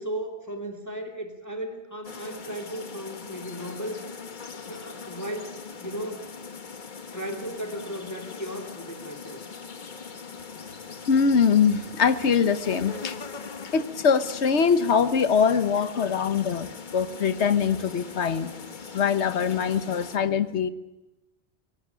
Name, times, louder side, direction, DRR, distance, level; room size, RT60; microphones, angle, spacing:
voice 1, 0.0-4.0 4.5-6.2 7.1-9.4, right 1 dB, 15° left, 3 dB, 2.4 m, -36 dB
sound 1, 2.0-20.2, left 5 dB, 45° left, 1.3 m, -41 dB
voice 2, 11.1-13.2 13.7-18.5 18.9-20.7, left 6 dB, 80° left, 12 dB, 1.4 m, -23 dB
24.5 x 17.5 x 8.8 m, 1.0 s
omnidirectional pair, 1.1 m